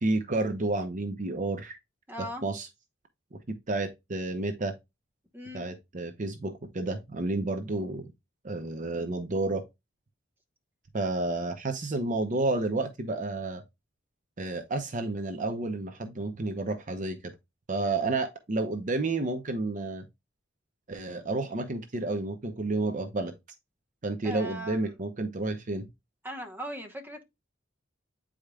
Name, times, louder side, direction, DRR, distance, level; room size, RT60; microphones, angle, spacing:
voice 1, 0.0-1.8 2.4-2.7 3.3-4.7 5.5-8.1 8.4-9.6 10.9-13.6 14.4-17.3 17.7-20.1 20.9-23.3 24.0-25.9, right 2 dB, 40° right, 0.7 m, -31 dB
voice 2, 2.1-2.4 5.3-5.6 24.2-24.9 26.2-27.2, equal, 10° right, 1.0 m, -38 dB
8.6 x 5.0 x 2.3 m
head